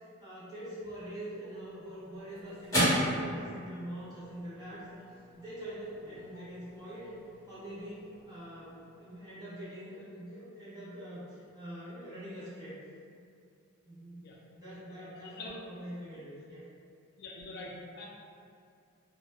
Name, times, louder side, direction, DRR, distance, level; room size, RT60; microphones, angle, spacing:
voice 1, 0.2-4.9 5.4-7.1 7.5-12.8 13.9-16.6, equal, 20° right, -13 dB, 0.6 m, -44 dB
sound 1, 1.4-10.0, equal, 15° left, 0.9 m, -37 dB
voice 2, 14.9-15.6 17.2-18.1, left 2 dB, 45° left, -3 dB, 0.3 m, -45 dB
2.1 x 2.0 x 3.0 m, 2.4 s
head